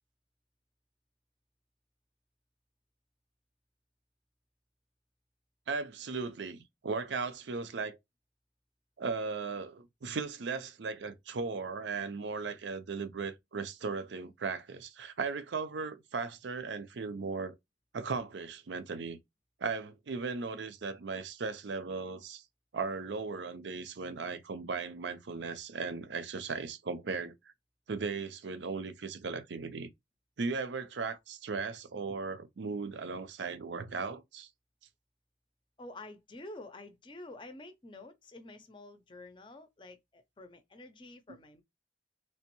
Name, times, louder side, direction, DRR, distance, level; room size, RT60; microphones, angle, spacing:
voice 1, 5.7-8.0 9.0-17.5 17.9-19.2 19.6-22.4 22.7-27.3 27.9-29.9 30.4-34.5, right 4 dB, 75° right, 0.5 m, -37 dB
voice 2, 35.8-41.6, left 2 dB, 25° left, 0.5 m, -49 dB
3.4 x 3.0 x 3.0 m
head